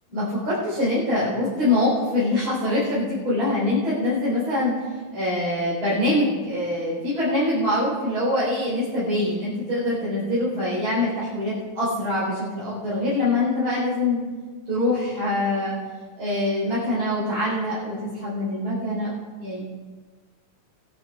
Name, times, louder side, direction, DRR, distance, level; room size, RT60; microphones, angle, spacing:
voice 1, 0.1-4.8 5.1-14.2 14.7-15.8 16.2-19.1 19.4-19.6, left 1 dB, 45° right, -10 dB, 4.8 m, -24 dB
21.5 x 8.7 x 4.8 m, 1.4 s
omnidirectional pair, 3.3 m